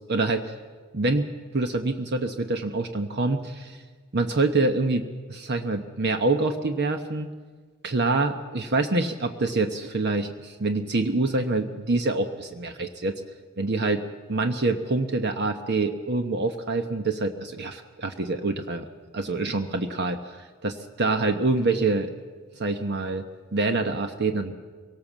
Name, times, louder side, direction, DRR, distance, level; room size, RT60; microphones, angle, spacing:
voice 1, 0.1-0.5 0.9-3.8 4.1-7.3 7.8-13.1 13.6-14.0 14.3-18.9 19.1-22.1 22.5-23.2 23.5-24.5, right 3 dB, 50° right, 7 dB, 1.0 m, -26 dB
23.5 x 18.5 x 7.4 m, 1.5 s
head